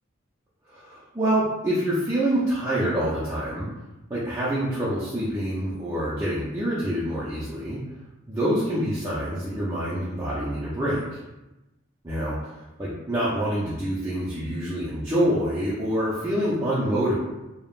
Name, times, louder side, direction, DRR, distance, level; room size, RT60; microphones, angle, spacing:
voice 1, 0.7-3.7 4.1-7.8 8.3-11.2 12.0-17.2, right 1 dB, 15° right, -9 dB, 0.4 m, -26 dB
3.3 x 2.0 x 2.4 m, 1.0 s
head